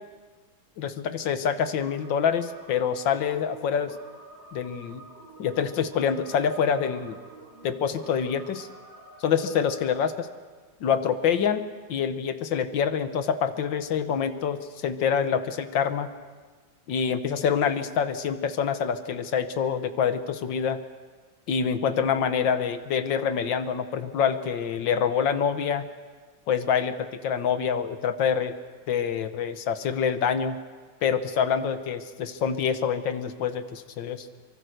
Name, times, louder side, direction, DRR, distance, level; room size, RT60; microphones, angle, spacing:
voice 1, 0.8-3.9 4.5-5.0 5.4-7.2 7.6-8.7 9.2-10.3 10.8-11.6 11.9-16.1 16.9-20.8 21.5-25.9 26.5-28.6 28.9-30.6 31.0-34.3, left 7 dB, 85° left, 10 dB, 1.8 m, -26 dB
sound 1, 1.8-10.0, right 2 dB, 65° right, 5.4 m, -49 dB
24.0 x 23.5 x 6.6 m, 1.4 s
omnidirectional pair, 2.0 m